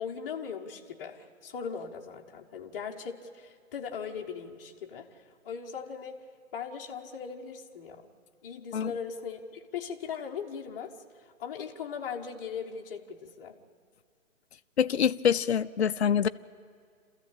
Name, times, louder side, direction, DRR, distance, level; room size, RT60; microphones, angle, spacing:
voice 1, 0.0-6.2 6.5-8.1 8.4-10.9 11.4-13.6, left 6 dB, 15° left, -4 dB, 1.0 m, -39 dB
voice 2, 14.8-16.3, left 8 dB, 50° left, 10 dB, 0.6 m, -25 dB
27.5 x 14.0 x 8.7 m, 2.1 s
hypercardioid pair, 155°, 41 cm